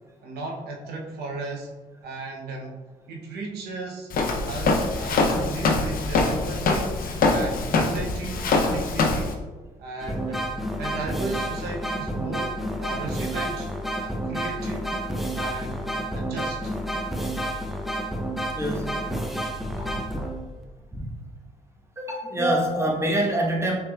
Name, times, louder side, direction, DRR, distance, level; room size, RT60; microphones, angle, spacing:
voice 1, 0.2-1.7 2.0-2.8 3.1-4.1 4.4-7.0 7.3-9.4 9.8-10.5 10.8-13.7 14.0-14.9 15.3-16.7, right 3 dB, 80° right, 0 dB, 0.8 m, -35 dB
Walk footsteps, 4.1-9.3, left 3 dB, 60° left, 0.6 m, -23 dB
sound 1, 10.0-20.6, right 1 dB, ahead, 0.6 m, -30 dB
voice 2, 18.5-18.9 19.6-20.2 20.9-21.1 22.0-23.8, right 1 dB, 15° right, 0 dB, 1.1 m, -26 dB
5.9 x 3.4 x 2.3 m, 1.2 s
supercardioid pair, 60°, 16 cm